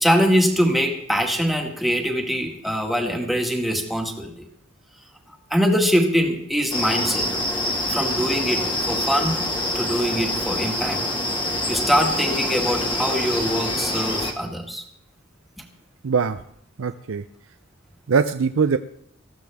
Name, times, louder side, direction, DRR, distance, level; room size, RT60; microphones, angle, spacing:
voice 1, 0.0-4.3 5.3-7.3 7.9-9.4 9.7-11.0 11.7-14.8 15.6-15.7, equal, ahead, 1 dB, 1.9 m, -23 dB
sound 1, 6.7-14.3, left 1 dB, 25° left, 1.8 m, -25 dB
voice 2, 16.0-16.4 16.8-17.2 18.1-18.8, right 5 dB, 85° right, 10 dB, 0.6 m, -21 dB
19.5 x 14.5 x 3.5 m, 0.69 s
head